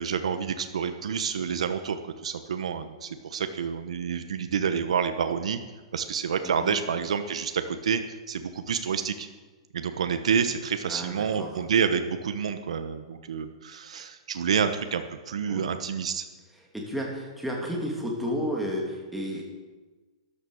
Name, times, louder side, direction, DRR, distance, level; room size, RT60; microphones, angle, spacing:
voice 1, 0.0-5.6 5.9-8.0 8.3-9.3 9.7-16.2, right 7 dB, 85° right, 8 dB, 1.1 m, -28 dB
voice 2, 6.4-6.8 10.9-11.6 15.5-15.7 16.7-19.4, equal, ahead, -2 dB, 2.7 m, -32 dB
13.5 x 11.5 x 6.5 m, 1.3 s
hypercardioid pair, 165°, 3 cm